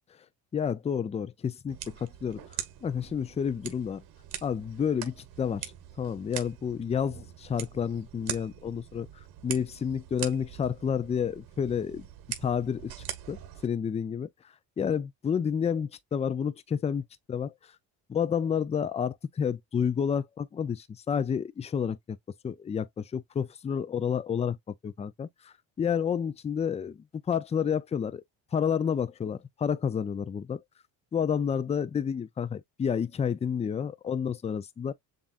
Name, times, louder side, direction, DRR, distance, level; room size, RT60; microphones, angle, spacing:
voice 1, 0.5-2.4 2.8-4.0 4.4-5.7 6.0-9.1 9.4-12.1 12.4-12.9 13.3-14.3 14.8-17.5 18.1-22.2 22.4-24.6 24.8-27.0 27.3-28.2 28.5-30.6 31.1-34.9, left 7 dB, 20° left, 0.4 m, -30 dB
sound 1, 1.7-13.7, right 10 dB, 65° right, 1.5 m, -42 dB
7.1 x 2.5 x 2.4 m
cardioid pair, 115°, 39 cm